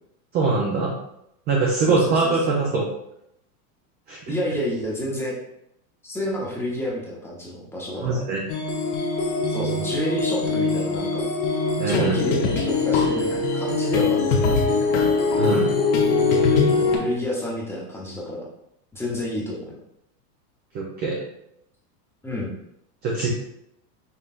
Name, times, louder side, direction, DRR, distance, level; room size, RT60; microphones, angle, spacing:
voice 1, 0.3-0.9 1.5-2.8 4.1-4.2 8.0-8.4 11.8-12.2 15.3-15.7 20.7-21.2 23.0-23.3, right 4 dB, 20° right, -2 dB, 0.4 m, -22 dB
voice 2, 1.9-2.5 4.3-5.3 6.0-8.2 9.5-11.3 11.9-14.9 16.8-18.4 18.9-19.7 22.2-22.5, equal, 5° left, -4 dB, 0.8 m, -29 dB
sound 1, 8.5-17.0, left 4 dB, 50° left, 0.9 m, -22 dB
5.6 x 3.1 x 2.4 m, 0.78 s
supercardioid pair, 140°, 48 cm